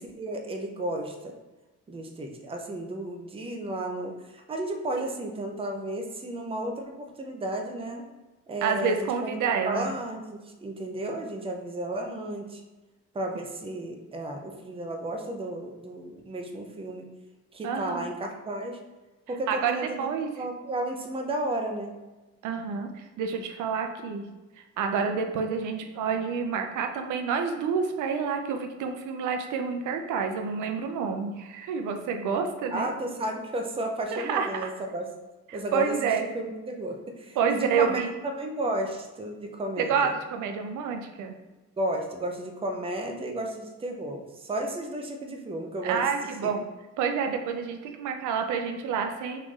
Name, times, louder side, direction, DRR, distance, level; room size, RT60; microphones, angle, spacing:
voice 1, 0.0-1.3 1.9-8.0 8.5-9.4 9.7-10.2 10.6-12.6 13.1-17.1 17.5-18.8 19.3-21.9 32.7-35.1 35.5-35.9 36.3-38.1 38.4-40.1 41.8-46.1 46.4-46.5, right 1 dB, 20° right, 2 dB, 0.5 m, -33 dB
voice 2, 8.6-9.9 17.6-18.1 19.5-20.3 22.4-22.9 23.2-24.3 24.8-32.9 34.1-34.7 35.7-36.2 37.4-38.1 39.8-41.3 45.8-46.7 47.0-49.4, right 6 dB, 80° right, 5 dB, 0.5 m, -28 dB
3.2 x 2.5 x 3.6 m, 1.1 s
cardioid pair, 90°, 30 cm